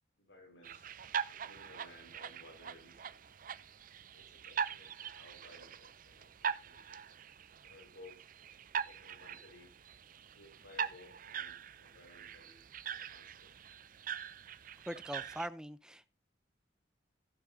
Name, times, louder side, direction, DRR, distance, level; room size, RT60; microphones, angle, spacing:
voice 1, 0.2-0.9 1.3-3.3 4.1-7.2 7.6-8.2 8.8-9.7 10.3-13.5, left 2 dB, 75° left, 5.1 m, -59 dB
sound 1, 0.6-15.5, right 7 dB, 45° right, 0.5 m, -42 dB
voice 2, 14.9-16.1, equal, 5° right, 0.7 m, -42 dB
15.5 x 10.0 x 2.8 m
head